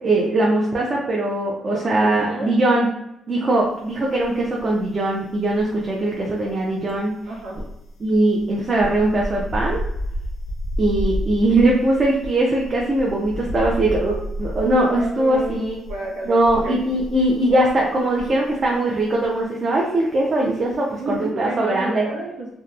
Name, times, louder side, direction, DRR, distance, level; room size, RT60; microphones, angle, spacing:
voice 1, 0.0-2.9 3.3-7.1 8.0-9.8 10.8-15.8 16.3-22.0, right 1 dB, 40° right, -3 dB, 0.4 m, -20 dB
voice 2, 1.7-2.6 7.3-7.6 14.9-16.8 20.9-22.5, right 2 dB, 90° right, -4 dB, 0.8 m, -31 dB
sound 1, 4.1-4.9 5.2-18.7 19.0-19.3, equal, 65° left, 0.4 m, -31 dB
2.7 x 2.1 x 2.3 m, 0.83 s
cardioid pair, 90°, 0 cm